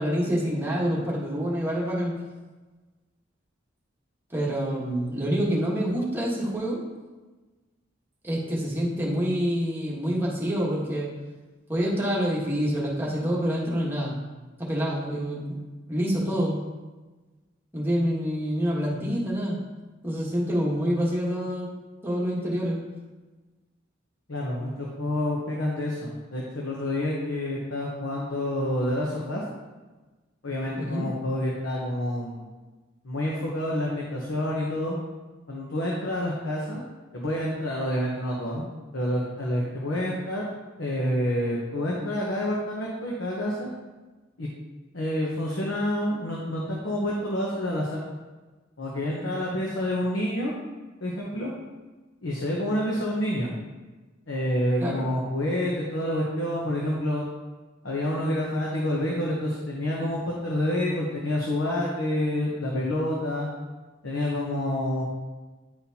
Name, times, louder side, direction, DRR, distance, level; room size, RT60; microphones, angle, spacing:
voice 1, 0.0-2.1 4.3-6.8 8.2-11.1 11.7-14.1 14.6-15.6 15.9-16.6 17.7-19.6 20.0-21.7 22.0-22.8 30.7-31.1 54.8-55.0, equal, 10° right, -5 dB, 1.2 m, -27 dB
voice 2, 24.3-29.4 30.4-32.5 33.0-35.0 35.5-36.8 37.1-38.6 38.9-40.5 40.8-43.7 44.4-44.5 44.9-48.0 48.8-50.5 51.0-51.5 52.2-53.5 54.3-57.2 57.8-63.5 64.0-65.0, left 1 dB, 75° left, -3 dB, 0.9 m, -28 dB
9.7 x 4.2 x 2.8 m, 1.3 s
head